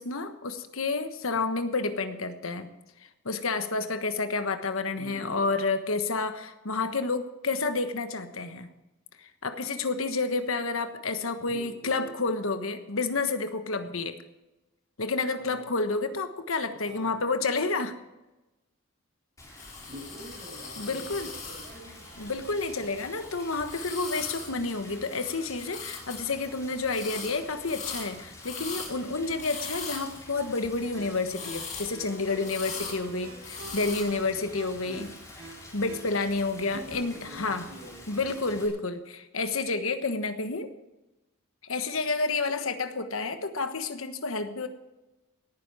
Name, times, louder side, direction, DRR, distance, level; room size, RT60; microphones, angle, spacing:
voice 1, 0.0-2.7 3.2-8.7 9.2-14.2 15.0-18.0 20.8-21.3 22.2-35.1 35.7-37.7 38.1-40.7 41.6-44.7, left 3 dB, 80° left, 9 dB, 1.3 m, -30 dB
voice 2, 5.0-5.4 11.5-12.1 15.4-15.6 16.9-17.2 19.8-22.1 34.8-35.1 36.7-38.0, equal, 40° right, -6 dB, 5.5 m, -45 dB
Rain, 19.4-38.7, left 1 dB, 15° left, 3.8 m, -48 dB
sound 1, 19.6-25.3 25.6-26.2 26.9-27.3 27.6-28.9 29.4-30.2 31.3-32.0 32.4-33.0 33.4-34.0, left 5 dB, 40° left, 5.7 m, -40 dB
sound 2, 21.6-36.9, right 1 dB, 75° right, 6.4 m, -51 dB
18.0 x 10.0 x 4.9 m, 1.0 s
head